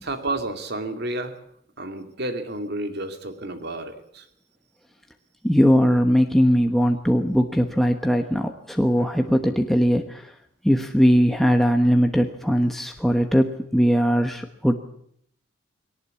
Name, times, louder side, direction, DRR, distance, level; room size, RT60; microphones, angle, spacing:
voice 1, 0.0-1.4 1.8-4.3, right 2 dB, 50° right, 6 dB, 2.6 m, -31 dB
voice 2, 5.4-10.3 10.6-14.7, equal, ahead, 4 dB, 1.1 m, -20 dB
22.0 x 18.5 x 8.5 m, 0.69 s
head